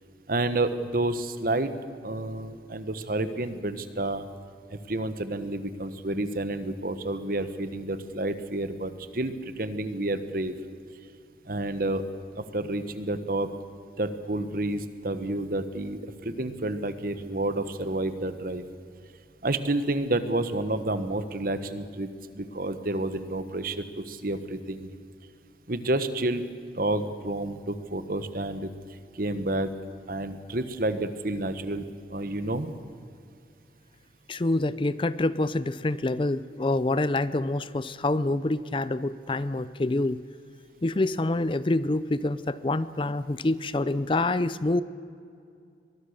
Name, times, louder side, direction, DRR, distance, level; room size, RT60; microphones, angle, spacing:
voice 1, 0.3-1.7 2.0-4.2 4.7-10.5 11.4-12.0 12.4-13.5 14.0-18.6 19.4-24.9 25.7-26.4 26.7-28.7 29.1-29.7 30.1-32.7, right 2 dB, 55° right, 11 dB, 1.2 m, -30 dB
voice 2, 34.3-40.2 40.8-44.8, left 2 dB, 30° left, 16 dB, 0.5 m, -26 dB
23.0 x 20.5 x 6.6 m, 2.4 s
head